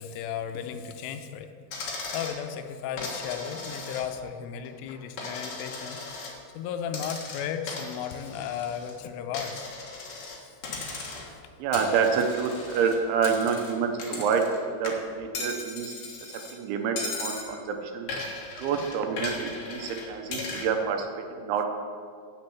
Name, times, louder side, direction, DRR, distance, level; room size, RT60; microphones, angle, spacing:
voice 1, 0.0-1.5 1.8-9.7, left 8 dB, 85° left, 8 dB, 3.2 m, -35 dB
Coin (dropping), 1.7-2.4 3.0-4.3 4.6-6.4 6.9-8.9 9.3-10.4 10.6-11.4 11.7-14.6 14.8-16.5 17.0-17.5 18.1-20.7, left 3 dB, 65° left, 1.8 m, -37 dB
voice 2, 11.6-14.4 14.7-18.1 18.6-21.7, right 6 dB, 75° right, 4 dB, 3.1 m, -28 dB
9.9 x 7.8 x 7.1 m, 2.2 s
omnidirectional pair, 5.7 m